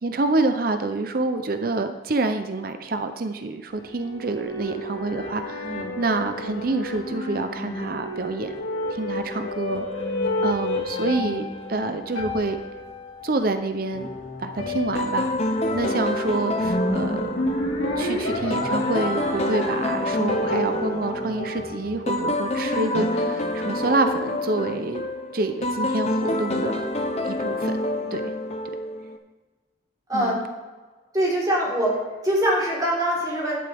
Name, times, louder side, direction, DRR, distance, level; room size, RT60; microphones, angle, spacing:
voice 1, 0.0-8.5 8.9-9.8 10.4-12.6 13.2-14.1 14.4-17.4 18.0-26.9 27.3-27.8 28.1-28.3 30.1-30.4, right 3 dB, 50° right, 8 dB, 0.6 m, -27 dB
sound 1, 3.7-22.3, left 2 dB, 90° left, 2.3 m, -31 dB
voice 2, 5.6-6.0 22.6-23.2 30.1-30.4 31.1-32.0 32.2-33.6, equal, 20° right, -6 dB, 4.0 m, -24 dB
sound 2, 14.9-29.2, left 1 dB, 35° left, 0.8 m, -27 dB
12.0 x 11.0 x 3.5 m, 1.3 s
head